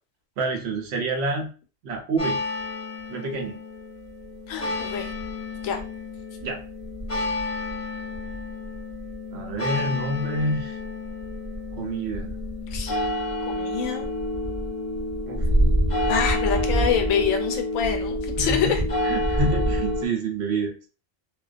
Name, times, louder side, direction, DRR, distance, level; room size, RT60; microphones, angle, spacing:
voice 1, 0.4-1.5 1.8-2.4 3.1-3.6 6.4-6.6 9.3-10.8 11.8-12.4 15.3-15.4 18.4-20.7, right 2 dB, 60° right, 3 dB, 0.8 m, -28 dB
sound 1, 2.2-20.1, left 1 dB, 30° left, 0.6 m, -28 dB
voice 2, 4.5-5.1 5.6-5.8 12.7-13.0 13.5-14.1 16.1-18.8, left 7 dB, 75° left, 4 dB, 1.0 m, -26 dB
2.4 x 2.2 x 2.3 m, 0.36 s
omnidirectional pair, 1.4 m